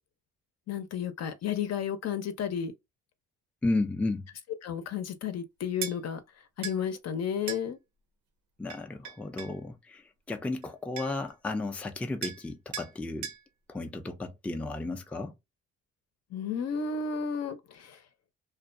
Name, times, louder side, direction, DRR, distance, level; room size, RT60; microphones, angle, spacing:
voice 1, 0.7-2.7 4.6-6.2 6.6-7.8 16.3-18.0, left 7 dB, 55° left, 0.6 m, -32 dB
voice 2, 3.6-4.3 8.6-10.0 10.3-13.3 13.7-15.3, left 2 dB, 5° left, 0.4 m, -33 dB
sound 1, 5.8-6.0 6.6-6.8 7.5-7.6 8.7-9.6 10.6-10.7 11.0-11.3 12.2-12.4 12.7-12.9 13.2-13.4, right 8 dB, 75° right, 0.7 m, -38 dB
2.5 x 2.2 x 2.5 m
cardioid pair, 90°, 30 cm